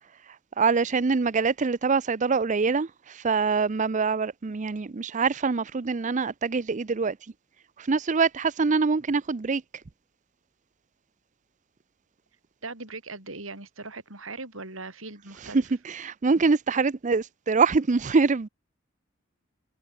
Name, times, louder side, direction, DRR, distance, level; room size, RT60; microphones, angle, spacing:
voice 1, 0.3-7.2 7.8-9.6 15.4-18.5, right 4 dB, 40° right, 0.5 m, -24 dB
voice 2, 12.6-15.6, right 3 dB, 80° right, 7.9 m, -39 dB
head